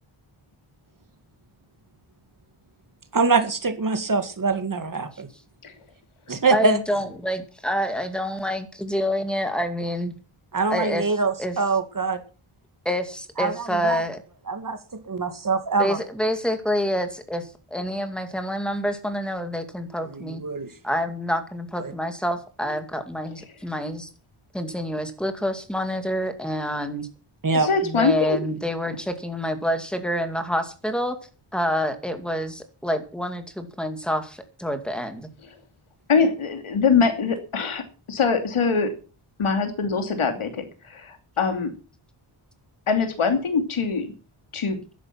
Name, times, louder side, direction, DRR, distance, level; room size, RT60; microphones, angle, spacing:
voice 1, 3.1-5.3 6.3-6.8 10.5-12.2 13.4-13.5 13.8-14.0 14.5-14.8 15.1-16.0 20.1-20.7 21.8-21.9 27.4-27.7, right 4 dB, 40° right, 8 dB, 2.1 m, -23 dB
voice 2, 6.5-10.1 10.7-11.1 11.4-11.6 12.9-14.2 15.8-20.4 20.8-24.1 24.5-27.1 27.8-31.2 31.5-35.3, equal, ahead, 7 dB, 2.2 m, -27 dB
voice 3, 27.5-28.4 36.1-38.9 39.4-41.7 42.9-44.1 44.5-44.8, left 5 dB, 80° left, 7 dB, 2.9 m, -23 dB
13.5 x 11.0 x 5.9 m, 0.36 s
wide cardioid pair, 180°, 49 cm